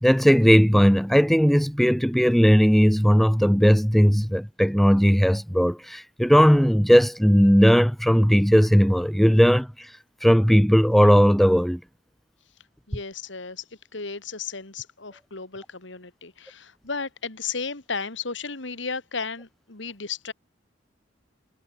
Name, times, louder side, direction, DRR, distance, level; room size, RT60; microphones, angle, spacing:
voice 1, 0.0-9.7 10.2-11.8, equal, ahead, 0.9 m, -17 dB
voice 2, 12.9-13.6 13.9-20.3, left 5 dB, 75° left, 2.5 m, -34 dB
head